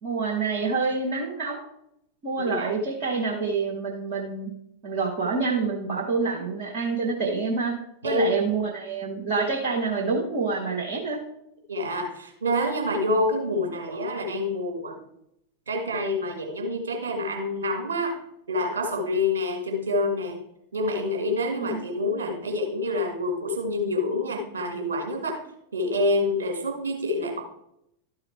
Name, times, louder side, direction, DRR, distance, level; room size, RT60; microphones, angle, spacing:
voice 1, 0.0-1.6 2.2-4.5 4.8-7.8 8.0-11.2 21.6-21.8, right 4 dB, 50° right, -2 dB, 1.4 m, -27 dB
voice 2, 2.4-2.7 8.0-8.4 11.7-15.0 15.7-18.2 18.5-20.4 20.7-25.4 25.7-27.4, left 1 dB, 65° right, 2 dB, 2.0 m, -27 dB
12.0 x 4.7 x 4.5 m, 0.78 s
figure-of-eight pair, 90°, 0 cm